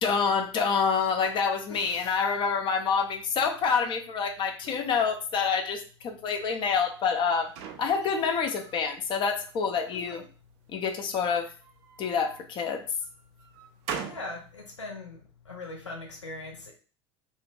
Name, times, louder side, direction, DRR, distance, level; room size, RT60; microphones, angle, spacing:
voice 1, 0.0-7.5 7.8-10.2 10.7-11.5 12.0-12.8, left 5 dB, 35° left, 5 dB, 0.4 m, -27 dB
voice 2, 1.7-2.2 4.6-4.7 9.8-10.2 14.0-16.7, left 2 dB, 85° left, -1 dB, 0.5 m, -41 dB
sound 1, 6.9-8.8 9.2-10.0 11.0-12.4 13.0-14.3, right 7 dB, 45° right, 0.4 m, -42 dB
2.5 x 2.1 x 2.6 m, 0.37 s
figure-of-eight pair, 75°, 15 cm